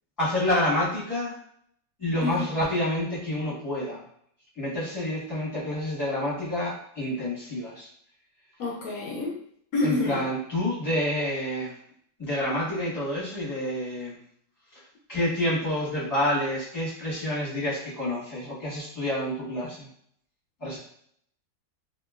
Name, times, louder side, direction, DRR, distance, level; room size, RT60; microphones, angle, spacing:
voice 1, 0.2-1.3 2.0-4.0 4.6-7.9 9.8-11.7 12.2-14.2 15.1-19.9 20.6-20.8, left 1 dB, 15° left, -8 dB, 1.2 m, -28 dB
voice 2, 8.6-9.4 9.7-10.2, left 2 dB, 75° left, -2 dB, 1.0 m, -28 dB
2.8 x 2.7 x 2.4 m, 0.65 s
omnidirectional pair, 1.6 m